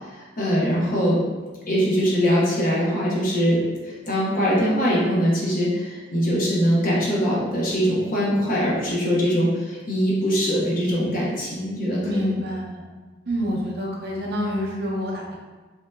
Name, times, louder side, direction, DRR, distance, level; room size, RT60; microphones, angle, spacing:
voice 1, 0.1-1.2 1.7-12.2, equal, 45° left, -6 dB, 0.8 m, -22 dB
voice 2, 12.0-12.8 13.3-15.4, equal, 55° right, -3 dB, 0.6 m, -27 dB
3.2 x 2.8 x 2.3 m, 1.3 s
head